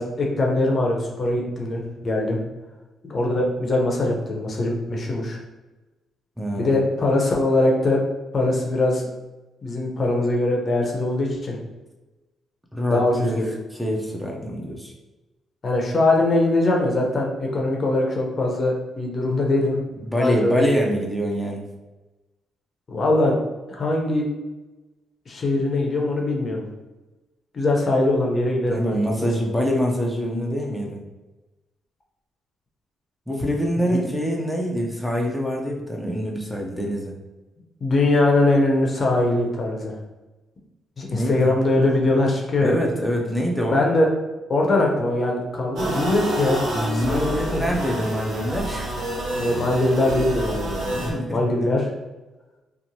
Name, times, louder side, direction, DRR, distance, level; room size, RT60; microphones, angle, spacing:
voice 1, 0.0-2.4 3.0-5.4 6.6-8.0 8.3-9.0 9.6-11.6 12.9-13.4 15.6-19.8 20.2-20.7 22.9-23.4 23.7-24.3 25.3-26.6 27.5-29.3 37.8-40.0 41.0-42.8 43.7-44.1 44.5-47.6 49.3-51.0 51.3-51.8, left 2 dB, 50° left, 0 dB, 0.6 m, -22 dB
voice 2, 6.4-6.8 12.7-14.9 20.0-21.6 28.7-31.0 33.3-37.2 41.1-41.5 42.6-43.8 46.7-49.0 51.0-51.7, equal, ahead, -1 dB, 0.5 m, -25 dB
sound 1, 45.8-51.1, right 1 dB, 80° right, 0.9 m, -28 dB
2.9 x 2.0 x 2.7 m, 1.1 s
supercardioid pair, 60°, 0 cm